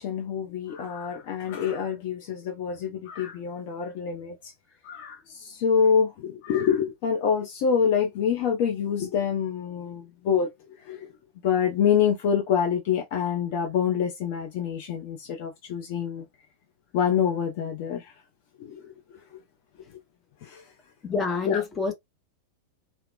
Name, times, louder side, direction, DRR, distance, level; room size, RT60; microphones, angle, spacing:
voice 1, 0.0-4.3 4.8-10.5 10.9-11.1 11.4-16.2 16.9-18.1 18.6-18.9 20.4-20.6 21.5-21.6, left 7 dB, 50° left, 0.5 m, -26 dB
voice 2, 21.0-21.9, left 5 dB, 20° left, 0.8 m, -27 dB
2.9 x 2.0 x 2.2 m
figure-of-eight pair, 90°, 0 cm